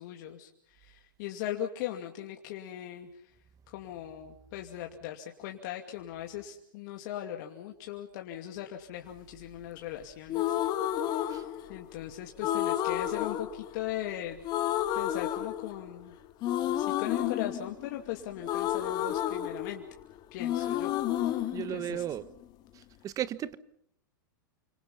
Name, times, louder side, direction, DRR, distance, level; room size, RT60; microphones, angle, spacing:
voice 1, 0.0-3.1 3.7-10.5 11.0-14.4 14.9-16.1 16.7-19.8 20.3-20.9 21.2-22.0, left 12 dB, 55° left, 3 dB, 2.6 m, -39 dB
sound 1, 10.3-12.0 12.4-14.2 14.4-16.0 16.4-20.1 20.4-22.4, left 12 dB, 40° left, 2.3 m, -31 dB
voice 2, 21.5-22.2 23.0-23.6, right 11 dB, 30° right, 16 dB, 1.3 m, -34 dB
29.5 x 26.0 x 5.6 m, 0.68 s
hypercardioid pair, 115°, 11 cm